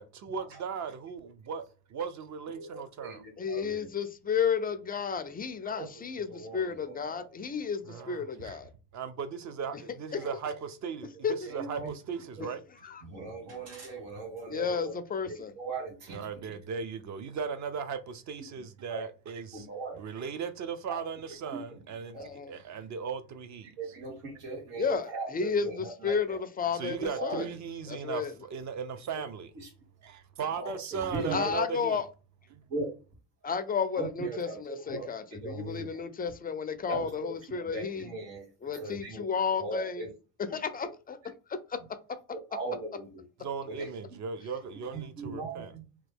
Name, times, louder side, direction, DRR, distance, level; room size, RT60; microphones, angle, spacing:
voice 1, 0.0-3.2 7.9-8.6 8.9-12.6 16.1-19.7 20.0-23.7 26.7-29.5 30.0-32.0 32.5-32.6 43.4-45.7, right 6 dB, 45° right, 0.6 m, -37 dB
voice 2, 2.6-3.9 5.6-7.3 7.9-8.0 10.2-10.3 11.4-11.9 12.4-12.5 13.0-14.9 15.2-16.2 18.5-18.6 18.9-19.1 19.5-20.0 20.9-21.0 21.5-21.6 22.1-22.3 23.8-26.4 27.1-27.4 29.5-29.7 30.5-31.6 32.7-32.9 34.0-36.0 36.9-38.5 38.7-39.2 39.6-40.1 40.5-40.9 42.3-43.2 43.6-43.9 44.9-45.8, right 3 dB, 85° right, 1.6 m, -39 dB
voice 3, 3.4-8.7 10.1-10.3 11.2-11.3 12.8-13.0 14.5-15.5 22.1-22.5 24.8-27.5 27.9-28.3 31.3-32.1 33.4-38.1 38.6-40.0 40.5-41.2 41.5-41.8, left 6 dB, 25° left, 0.3 m, -32 dB
3.0 x 2.3 x 3.4 m
supercardioid pair, 80°, 42 cm